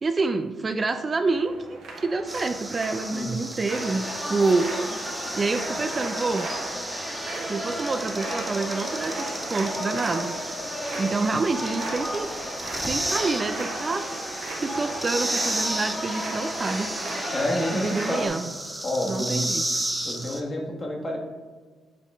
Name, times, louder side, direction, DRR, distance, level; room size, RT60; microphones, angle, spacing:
voice 1, 0.0-4.7 5.4-6.5 7.5-10.4 11.0-12.3 12.8-14.1 14.5-16.9 17.7-18.5 19.0-19.7, right 3 dB, 35° right, 8 dB, 0.3 m, -27 dB
sound 1, 1.3-18.4, right 2 dB, 75° right, 1.3 m, -39 dB
sound 2, 2.3-20.4, right 1 dB, 10° right, 0.7 m, -34 dB
sound 3, 3.7-18.3, equal, 10° left, 1.4 m, -34 dB
voice 2, 17.3-18.3 18.8-19.5 20.0-21.2, left 1 dB, 30° left, 0 dB, 1.4 m, -29 dB
7.6 x 3.6 x 3.5 m, 1.4 s
cardioid pair, 90°, 0 cm